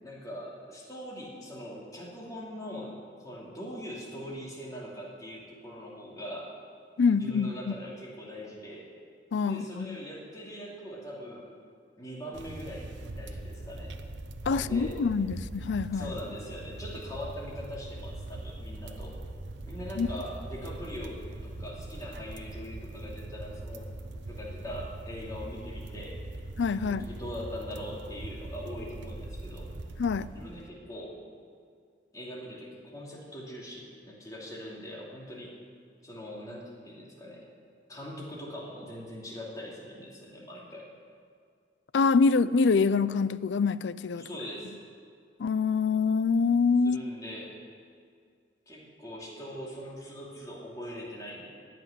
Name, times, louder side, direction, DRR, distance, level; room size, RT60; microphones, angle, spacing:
voice 1, 0.0-6.5 7.1-8.9 9.4-11.5 12.0-14.0 14.5-15.0 15.9-19.2 19.6-23.9 24.3-26.2 26.8-29.7 30.3-31.2 32.1-35.5 36.0-37.5 37.9-40.9 44.2-44.7 46.8-47.5 48.7-51.5, equal, 20° left, 2.7 m, -42 dB
voice 2, 7.0-7.7 9.3-10.0 14.5-16.1 20.0-20.1 26.6-27.1 30.0-30.3 41.9-44.3 45.4-47.0, left 5 dB, 65° left, 0.4 m, -25 dB
sound 1, 12.3-30.7, right 2 dB, 70° right, 0.9 m, -41 dB
17.0 x 6.1 x 9.9 m
head